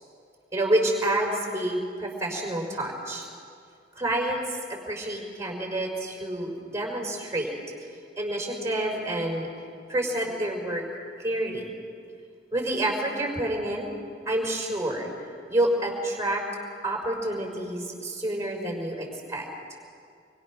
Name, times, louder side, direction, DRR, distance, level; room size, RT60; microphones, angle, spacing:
voice 1, 0.5-3.3 3.9-4.4 4.7-7.5 8.2-9.5 9.9-10.8 11.2-11.7 12.5-13.9 14.2-15.1 15.5-16.4 16.8-19.5, right 1 dB, 15° right, 0 dB, 4.7 m, -28 dB
26.5 x 23.5 x 6.3 m, 2.3 s
head